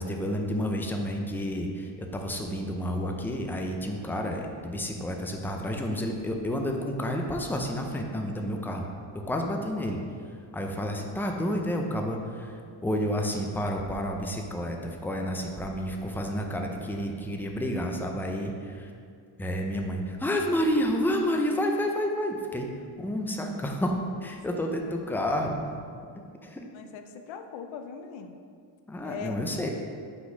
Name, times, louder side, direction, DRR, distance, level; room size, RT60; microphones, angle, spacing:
voice 1, 0.0-8.9 9.1-10.0 10.5-18.9 19.4-22.7 23.0-23.9 24.2-25.6 26.4-26.6 28.9-29.7, equal, 5° left, 2 dB, 0.4 m, -30 dB
voice 2, 26.7-28.4 29.0-29.4, left 7 dB, 70° left, 7 dB, 0.7 m, -40 dB
6.0 x 4.0 x 5.2 m, 2.3 s
cardioid pair, 120°, 49 cm